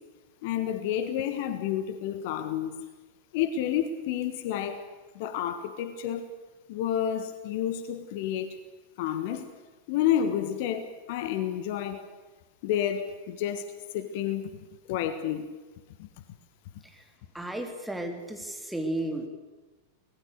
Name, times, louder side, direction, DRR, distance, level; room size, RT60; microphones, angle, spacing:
voice 1, 0.4-2.8 3.3-4.9 5.1-6.3 6.7-8.6 9.0-9.5 9.9-12.1 12.6-13.7 13.9-14.5 14.9-15.5 16.0-16.1, left 10 dB, 50° left, 11 dB, 1.5 m, -30 dB
voice 2, 17.3-19.3, right 1 dB, 5° right, 3 dB, 3.2 m, -33 dB
24.5 x 19.5 x 6.7 m, 1.2 s
figure-of-eight pair, 90°, 0 cm